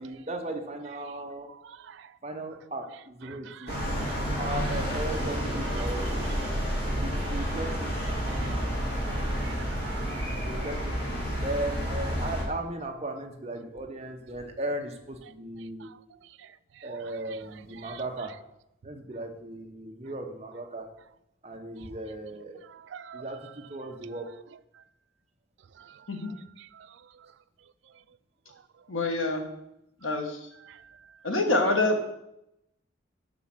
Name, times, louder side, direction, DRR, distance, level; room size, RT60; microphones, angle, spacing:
voice 1, 0.0-1.5 2.2-3.7 4.4-6.3 6.7-8.0 10.5-11.0 11.4-15.9 16.8-18.3 18.8-20.9 21.4-22.6 23.1-24.3, right 1 dB, 30° right, 3 dB, 0.9 m, -36 dB
voice 2, 1.5-2.1 3.3-4.2 5.8-5.9 8.1-10.7 15.8-16.0 16.8-18.0 22.7-23.3 25.8-26.0 26.6-26.9 30.6-30.8, right 8 dB, 70° right, 13 dB, 0.3 m, -47 dB
sound 1, 3.7-12.4, equal, 55° left, 2.4 m, -30 dB
voice 3, 28.9-29.4 30.0-30.4 31.2-32.1, left 2 dB, 90° left, 3 dB, 1.2 m, -26 dB
6.0 x 4.9 x 5.7 m, 0.82 s
head